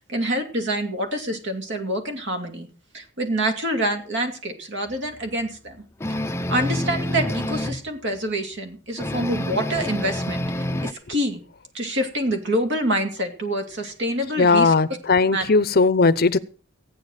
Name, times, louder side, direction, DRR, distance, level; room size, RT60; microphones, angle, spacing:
voice 1, 0.1-2.7 2.9-5.8 6.2-11.4 11.7-14.7 15.3-15.5, right 1 dB, 60° right, 5 dB, 2.7 m, -26 dB
sound 1, 6.0-7.8 9.0-10.9, left 1 dB, 15° left, 0.6 m, -27 dB
voice 2, 14.4-16.4, left 4 dB, 50° left, 16 dB, 0.7 m, -18 dB
15.0 x 9.3 x 6.4 m, 0.39 s
head